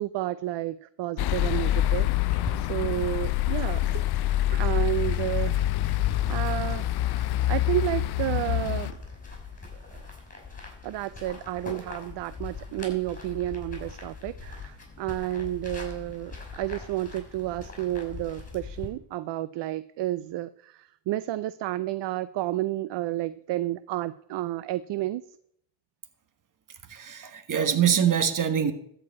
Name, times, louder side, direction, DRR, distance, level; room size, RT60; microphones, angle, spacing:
voice 1, 0.0-2.1 2.6-4.0 4.5-5.7 6.3-6.8 7.1-9.0 9.9-10.0 10.8-25.2, right 15 dB, 60° right, 0.6 m, -31 dB
sound 1, 1.2-8.9, left 14 dB, 55° left, 0.5 m, -26 dB
sound 2, 2.3-18.9, left 4 dB, 15° left, 5.3 m, -41 dB
voice 2, 26.9-28.7, right 8 dB, 40° right, 1.6 m, -24 dB
13.0 x 5.0 x 8.5 m
cardioid pair, 85°, 49 cm